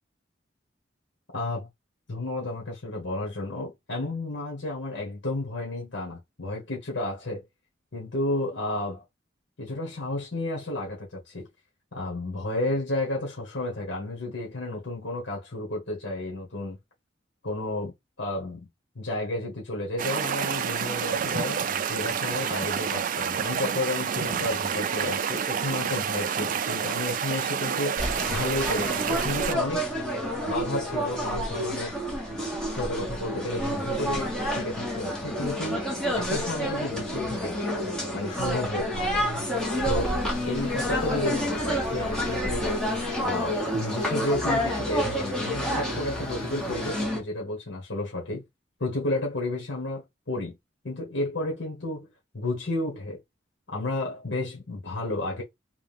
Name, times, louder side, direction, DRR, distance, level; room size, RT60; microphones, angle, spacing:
voice 1, 1.3-1.7 2.1-7.4 7.9-9.0 9.6-11.5 11.9-16.8 17.4-17.9 18.2-18.6 18.9-29.9 30.5-32.0 32.7-35.9 36.1-37.5 38.1-39.4 39.8-40.2 40.4-42.7 43.2-48.4 48.8-50.5 50.8-52.1 52.3-53.2 53.7-55.4, left 2 dB, 70° left, 1.6 m, -32 dB
sound 1, 20.0-29.5, right 7 dB, 45° right, 0.4 m, -29 dB
sound 2, 28.0-47.2, equal, 5° left, 1.4 m, -29 dB
sound 3, 39.5-47.1, left 3 dB, 40° left, 2.5 m, -43 dB
3.6 x 2.7 x 3.5 m
head